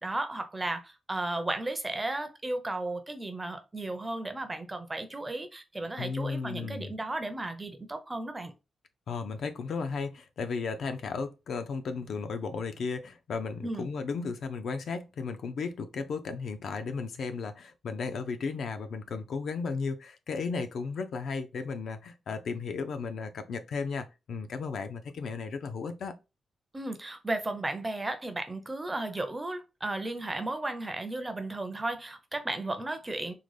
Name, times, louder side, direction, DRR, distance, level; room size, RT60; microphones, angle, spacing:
voice 1, 0.0-8.5 13.6-13.9 26.7-33.3, right 2 dB, 15° right, 0.5 m, -34 dB
voice 2, 6.0-6.9 9.1-26.1, left 4 dB, 65° left, 0.4 m, -35 dB
3.7 x 2.1 x 3.2 m
wide cardioid pair, 160°, 0 cm